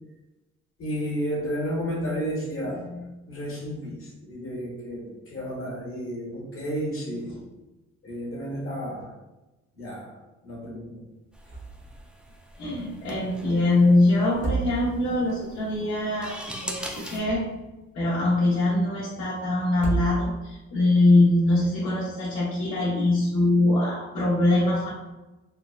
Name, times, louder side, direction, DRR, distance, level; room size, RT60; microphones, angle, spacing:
voice 1, 0.8-2.9 3.3-7.4 8.0-9.1 9.8-10.1 10.4-11.0 16.8-16.9, equal, 45° left, -4 dB, 1.4 m, -32 dB
sound 1, 11.3-17.2, equal, 5° right, 0.4 m, -41 dB
sound 2, 11.4-11.9 12.2-12.3 14.2-15.2 16.9-17.8 19.7-20.6, right 3 dB, 35° right, 1.1 m, -31 dB
voice 2, 12.6-17.5 17.9-24.9, left 2 dB, 65° left, -11 dB, 1.1 m, -23 dB
3.7 x 2.1 x 2.4 m, 1.1 s
cardioid pair, 90°, 30 cm